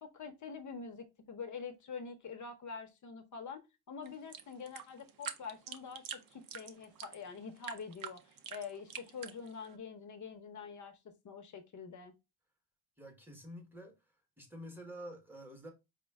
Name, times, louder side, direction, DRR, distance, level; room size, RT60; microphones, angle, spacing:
voice 1, 0.0-3.6 3.9-8.2 8.5-12.1, left 5 dB, 35° left, 0.7 m, -46 dB
sound 1, 4.1-9.8, right 8 dB, 45° right, 0.6 m, -46 dB
voice 2, 13.0-14.0 14.4-15.7, equal, 5° right, 1.0 m, -48 dB
4.9 x 2.2 x 3.4 m
cardioid pair, 135°, 49 cm